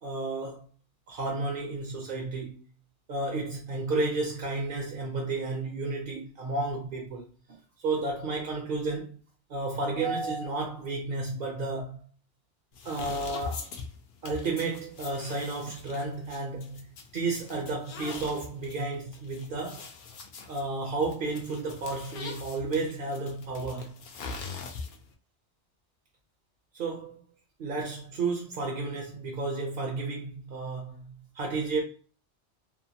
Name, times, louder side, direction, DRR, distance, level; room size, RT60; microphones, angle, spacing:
voice 1, 0.0-0.7 1.1-2.6 3.1-7.3 7.8-9.2 9.5-12.0 12.8-13.7 14.2-16.9 17.1-19.9 20.4-23.9 26.7-27.2 27.6-31.8, right 3 dB, 55° right, 0.7 m, -32 dB
sound 1, 12.7-25.1, left 4 dB, 60° left, 0.6 m, -43 dB
2.8 x 2.1 x 2.7 m
omnidirectional pair, 1.2 m